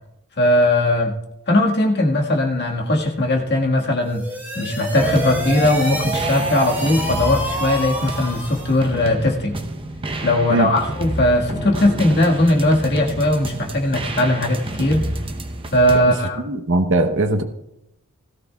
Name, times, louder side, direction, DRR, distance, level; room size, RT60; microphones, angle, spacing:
voice 1, 0.4-1.2 1.5-4.2 4.5-9.6 10.2-15.0 15.7-16.4, left 1 dB, 50° left, 0 dB, 1.7 m, -19 dB
sound 1, 4.0-8.8, right 1 dB, 10° right, 3.3 m, -27 dB
sound 2, 5.0-16.0, right 1 dB, 25° right, 0.8 m, -29 dB
voice 2, 16.4-17.4, right 1 dB, 60° right, 7 dB, 1.0 m, -19 dB
17.5 x 14.5 x 2.4 m, 0.85 s
head